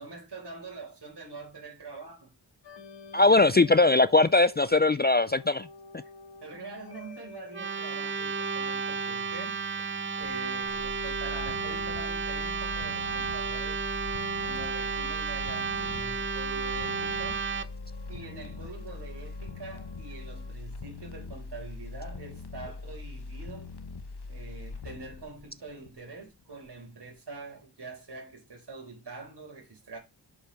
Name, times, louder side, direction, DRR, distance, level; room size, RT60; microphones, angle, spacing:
voice 1, 0.0-2.3 3.2-3.5 6.4-9.6 10.2-13.9 14.4-17.4 18.1-23.7 24.3-30.0, right 3 dB, 70° right, 4.2 m, -44 dB
sound 1, 2.6-20.5, left 6 dB, 85° left, 1.7 m, -51 dB
voice 2, 3.1-5.7, left 3 dB, 25° left, 0.3 m, -20 dB
sound 2, 7.5-17.7, right 5 dB, 30° right, 0.7 m, -32 dB
sound 3, 10.2-26.3 26.7-26.8, left 3 dB, 65° left, 1.1 m, -42 dB
6.7 x 5.0 x 5.8 m
wide cardioid pair, 85°, 42 cm